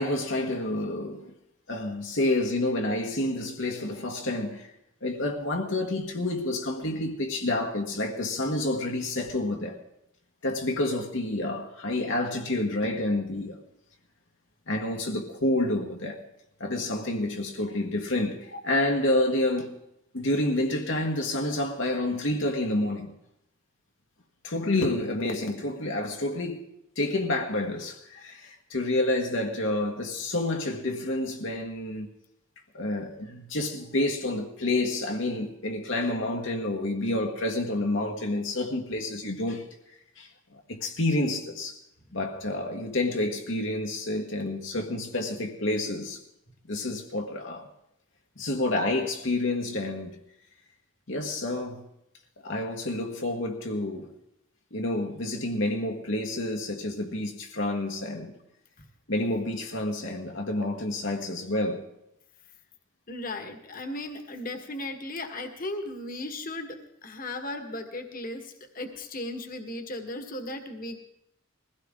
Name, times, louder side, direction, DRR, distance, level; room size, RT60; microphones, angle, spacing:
voice 1, 0.0-1.3 1.7-4.7 5.0-9.8 10.4-13.6 14.7-16.2 16.6-19.8 20.1-23.1 24.4-26.7 27.0-32.1 32.7-39.6 40.2-41.8 42.1-46.2 46.7-47.7 48.4-50.2 51.1-51.8 52.4-54.1 54.7-58.3 59.1-61.9, left 1 dB, 65° left, 1.5 m, -29 dB
voice 2, 63.1-71.0, left 1 dB, 40° left, 1.5 m, -36 dB
21.5 x 16.0 x 3.7 m
head